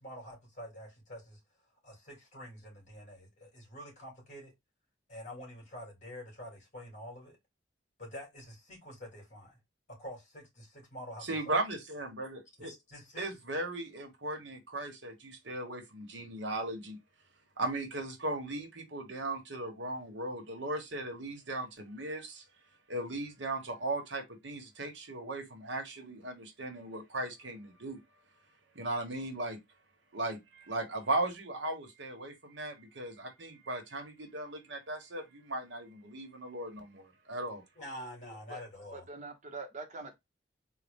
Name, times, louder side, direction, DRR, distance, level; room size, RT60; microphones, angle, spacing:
voice 1, 0.0-1.4 1.8-4.5 5.1-7.4 8.0-9.6 9.9-11.6 12.6-13.2 37.7-39.1, equal, 40° left, 2.4 m, -47 dB
voice 2, 11.2-12.7 13.2-17.0 17.6-22.4 22.9-28.0 28.7-29.6 30.1-37.6, right 2 dB, 70° right, 1.2 m, -37 dB
voice 3, 38.9-40.2, right 3 dB, 40° right, 0.9 m, -43 dB
4.0 x 2.3 x 3.5 m
head